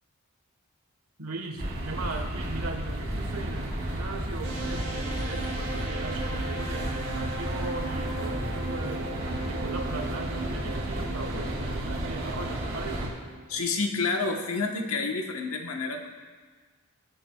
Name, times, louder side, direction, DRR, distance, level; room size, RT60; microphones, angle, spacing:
voice 1, 1.2-9.2 9.5-13.2, right 2 dB, 85° right, 4 dB, 1.4 m, -38 dB
sound 1, 1.6-13.1, right 1 dB, 60° right, 2.7 m, -33 dB
sound 2, 4.4-14.3, right 2 dB, 30° right, 3.4 m, -39 dB
voice 2, 13.5-16.1, left 4 dB, 80° left, 3 dB, 1.1 m, -29 dB
21.0 x 7.3 x 2.3 m, 1.4 s
head